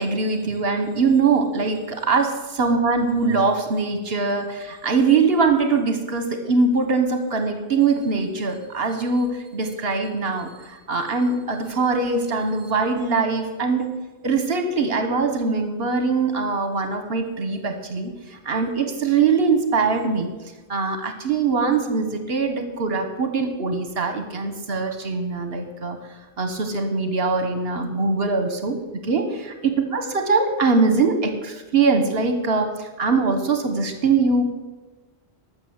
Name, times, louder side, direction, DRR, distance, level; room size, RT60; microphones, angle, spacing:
voice 1, 0.0-13.9 14.2-18.1 18.4-20.3 20.7-26.0 26.4-28.8 29.0-34.4, right 4 dB, 65° right, 6 dB, 1.4 m, -22 dB
12.5 x 6.4 x 7.9 m, 1.2 s
omnidirectional pair, 1.1 m